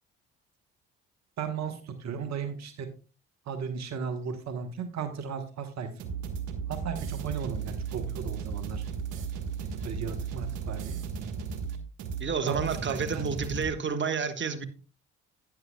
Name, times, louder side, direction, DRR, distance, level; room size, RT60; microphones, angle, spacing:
voice 1, 1.4-2.9 3.5-5.9 6.7-8.8 9.8-11.0 12.5-12.6 12.9-13.2, right 6 dB, 60° right, 8 dB, 1.3 m, -35 dB
sound 1, 6.0-13.7, right 6 dB, 80° right, 1.4 m, -35 dB
voice 2, 12.2-14.7, right 5 dB, 40° right, 9 dB, 1.4 m, -30 dB
12.0 x 9.5 x 2.2 m, 0.34 s
hypercardioid pair, 50°, 30 cm